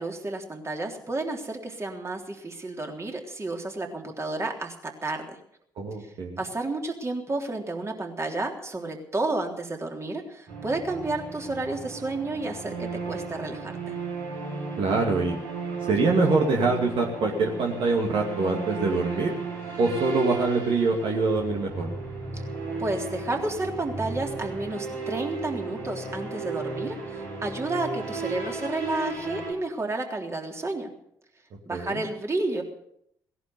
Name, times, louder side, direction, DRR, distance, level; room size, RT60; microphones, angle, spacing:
voice 1, 0.0-5.4 6.0-14.0 22.3-22.4 22.8-30.9 31.7-32.6, right 2 dB, 25° right, 2 dB, 3.6 m, -31 dB
voice 2, 5.8-6.4 14.8-15.4 15.9-19.3 19.8-21.9 31.7-32.0, right 3 dB, 55° right, 0 dB, 2.4 m, -24 dB
sound 1, 10.5-29.5, right 4 dB, 75° right, 5.2 m, -34 dB
18.0 x 11.0 x 6.9 m, 0.73 s
hypercardioid pair, 45°, 10 cm